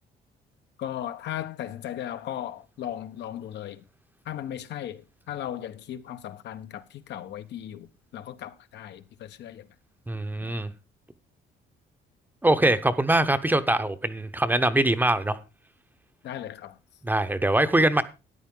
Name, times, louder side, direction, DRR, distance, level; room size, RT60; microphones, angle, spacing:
voice 1, 0.8-3.8 4.2-5.0 5.3-9.7 10.4-10.5 16.2-16.8, left 11 dB, 70° left, 1.2 m, -36 dB
voice 2, 10.1-10.7 12.4-15.4 17.0-18.0, right 1 dB, 10° right, 0.8 m, -23 dB
13.5 x 9.8 x 3.8 m
cardioid pair, 130°, 18 cm